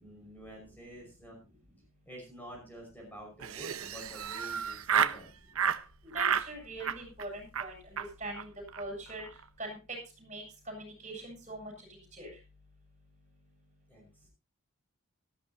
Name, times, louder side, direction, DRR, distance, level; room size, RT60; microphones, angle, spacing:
voice 1, 0.0-1.4 2.1-5.3 13.9-14.3, equal, 10° left, 0 dB, 5.5 m, -48 dB
Laughter, 3.4-5.2 5.5-5.8 6.1-6.5 6.8-7.2 7.5-7.7 8.0-8.1 8.3-8.4 8.7-8.8 9.1-9.4, right 7 dB, 80° right, 0.9 m, -31 dB
voice 2, 6.0-7.8 8.2-8.5 8.8-9.3 9.6-11.7 12.1-12.3, right 2 dB, 35° right, 3 dB, 7.3 m, -42 dB
18.5 x 14.0 x 2.8 m, 0.31 s
head